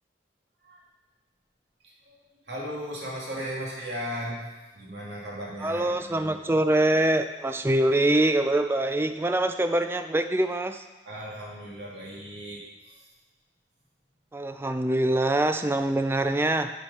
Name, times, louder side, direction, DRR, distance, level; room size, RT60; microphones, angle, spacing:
voice 1, 1.8-2.2 2.5-4.5 4.7-6.3 11.1-12.7, equal, 70° right, -4 dB, 2.2 m, -36 dB
voice 2, 5.6-10.8 14.3-16.7, right 1 dB, 15° right, 9 dB, 0.3 m, -24 dB
7.1 x 4.9 x 5.5 m, 1.1 s
head